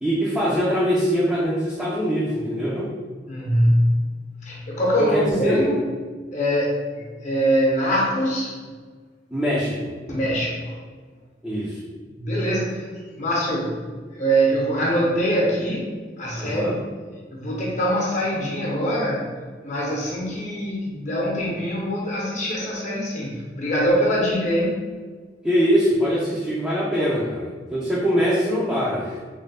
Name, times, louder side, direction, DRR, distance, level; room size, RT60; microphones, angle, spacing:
voice 1, 0.0-2.9 5.0-5.6 9.3-9.9 11.4-11.8 16.4-16.8 25.4-29.2, equal, 5° right, -8 dB, 0.5 m, -23 dB
voice 2, 3.3-5.9 6.3-8.7 10.1-10.8 12.1-16.8 17.3-19.4 19.6-24.8, equal, 45° left, -4 dB, 0.9 m, -23 dB
3.2 x 2.2 x 4.0 m, 1.5 s
head